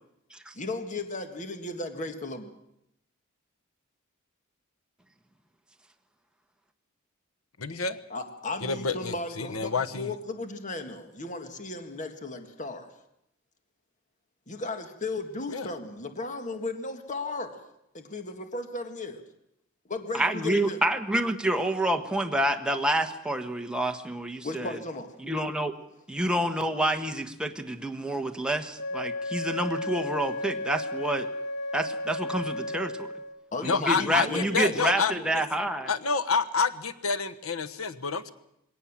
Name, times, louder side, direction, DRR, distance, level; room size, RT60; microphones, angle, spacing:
voice 1, 0.5-2.5 8.1-12.9 14.5-17.5 17.9-19.2 19.9-20.8 24.4-25.1 33.5-34.8 35.1-35.3, left 2 dB, 35° left, 1.8 m, -35 dB
voice 2, 7.6-8.0 8.6-10.1 15.5-15.7 33.6-35.4 35.8-38.3, left 5 dB, 85° left, 1.2 m, -28 dB
voice 3, 20.1-24.8 25.2-25.7 26.1-31.3 31.7-33.1 33.6-35.9, right 1 dB, 5° right, 1.2 m, -28 dB
Wind instrument woodwind instrument, 28.7-33.4, left 2 dB, 55° left, 2.3 m, -34 dB
21.0 x 18.0 x 7.4 m
head